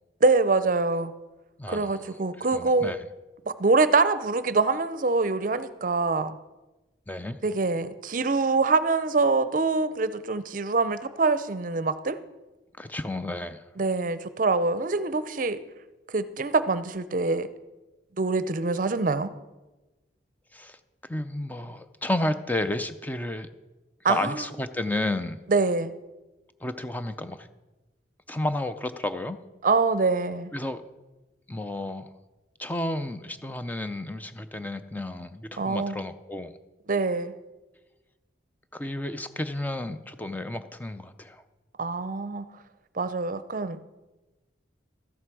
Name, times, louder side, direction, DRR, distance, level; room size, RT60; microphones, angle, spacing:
voice 1, 0.2-1.1 1.7-2.9 3.5-6.3 7.4-12.2 13.8-15.6 16.1-17.5 18.2-19.3 24.0-24.4 25.5-25.9 29.6-30.5 35.6-36.0 36.9-37.3 41.8-42.5 43.0-43.8, right 3 dB, 45° right, 14 dB, 0.6 m, -24 dB
voice 2, 1.6-2.2 2.5-3.1 7.1-7.4 12.8-13.6 20.5-23.5 24.0-25.4 26.6-27.5 28.3-29.4 30.5-30.8 31.5-32.1 32.6-36.6 38.7-41.4, left 1 dB, 10° left, 10 dB, 0.4 m, -32 dB
13.5 x 7.9 x 6.1 m, 1.1 s
head